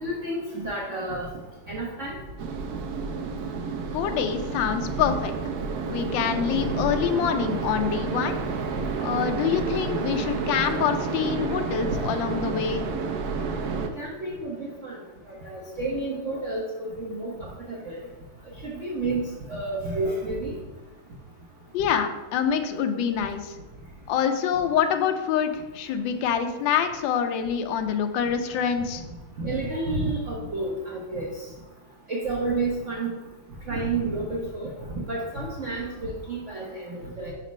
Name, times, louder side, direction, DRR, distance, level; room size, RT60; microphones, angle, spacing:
voice 1, 0.0-1.3 1.7-2.1 6.7-6.8 11.9-12.0 13.7-14.9 15.3-16.6 17.0-18.0 18.6-19.2 19.5-20.6 29.4-31.3 32.1-33.1 33.7-34.7 35.1-37.3, right 2 dB, 50° right, -4 dB, 1.0 m, -30 dB
sound 1, 2.4-13.9, right 5 dB, 75° right, 0.8 m, -30 dB
voice 2, 3.9-5.3 5.9-8.4 9.0-12.8 21.7-23.6 24.1-29.0, left 8 dB, 75° left, 6 dB, 1.2 m, -26 dB
5.8 x 4.2 x 5.2 m, 1.1 s
omnidirectional pair, 2.4 m